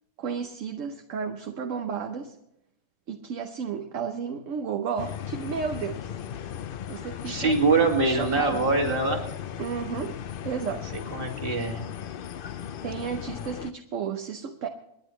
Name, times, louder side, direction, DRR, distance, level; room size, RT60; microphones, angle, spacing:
voice 1, 0.2-2.4 3.1-6.1 6.9-7.5 8.0-8.7 9.6-10.2 10.4-10.9 12.8-14.7, right 6 dB, 65° right, 6 dB, 1.1 m, -32 dB
sound 1, 5.0-13.7, left 9 dB, 60° left, 0.5 m, -37 dB
voice 2, 7.3-9.2 11.1-11.8, right 3 dB, 40° right, 2 dB, 2.3 m, -23 dB
28.5 x 10.0 x 3.2 m, 0.84 s
omnidirectional pair, 1.5 m